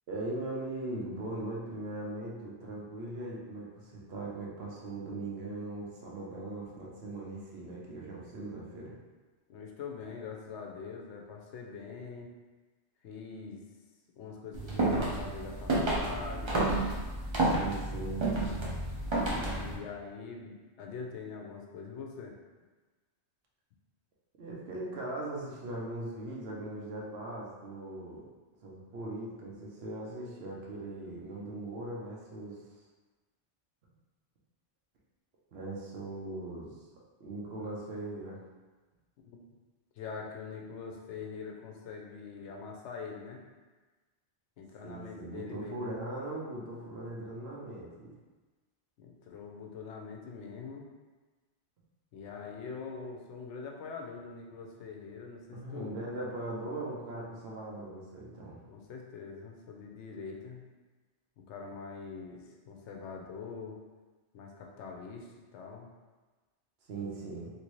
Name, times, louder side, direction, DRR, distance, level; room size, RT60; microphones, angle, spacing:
voice 1, 0.1-8.9 17.3-18.3 24.4-28.3 28.6-32.6 35.5-36.8 37.2-38.4 44.8-48.1 55.5-58.6 66.9-67.5, right 2 dB, 65° right, -4 dB, 0.9 m, -39 dB
voice 2, 9.5-12.3 13.0-13.6 14.2-16.6 19.4-22.3 39.2-39.4 40.0-43.4 44.6-45.9 49.0-50.9 52.1-56.0 58.7-60.6 61.4-63.7 64.3-65.9, left 5 dB, 80° left, 0 dB, 0.9 m, -43 dB
sound 1, 14.5-19.8, right 2 dB, 40° right, 0.4 m, -30 dB
3.1 x 2.6 x 3.0 m, 1.3 s
omnidirectional pair, 1.2 m